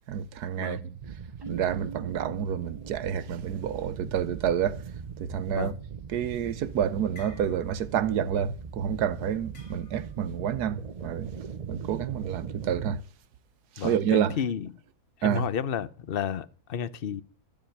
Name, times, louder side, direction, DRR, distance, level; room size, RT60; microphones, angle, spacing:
voice 1, 0.1-1.0 1.5-4.8 5.2-5.7 6.1-11.3 11.7-13.0 13.8-14.4 15.2-15.5, right 9 dB, 90° right, 1.4 m, -29 dB
sound 1, 1.0-13.0, right 6 dB, 55° right, 0.4 m, -40 dB
Keyboard (musical), 1.4-4.0, right 5 dB, 20° right, 0.7 m, -44 dB
sound 2, 7.1-8.0 8.3-8.5 9.5-10.2, left 2 dB, 70° left, 4.5 m, -52 dB
voice 2, 13.8-14.7 15.2-17.2, left 8 dB, 45° left, 0.8 m, -32 dB
13.0 x 7.1 x 9.2 m
omnidirectional pair, 1.6 m